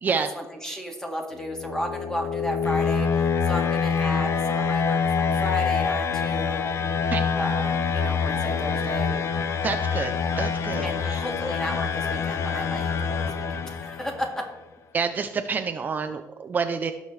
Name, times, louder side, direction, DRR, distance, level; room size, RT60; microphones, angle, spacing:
voice 1, 0.1-6.6 7.4-9.1 10.8-14.5, equal, 10° left, 1 dB, 1.9 m, -33 dB
sound 1, 1.4-14.3, left 6 dB, 60° left, 0.7 m, -26 dB
voice 2, 9.6-11.3 14.9-16.9, right 5 dB, 35° right, 7 dB, 0.5 m, -28 dB
17.0 x 6.4 x 3.2 m, 1.2 s
cardioid pair, 135°, 6 cm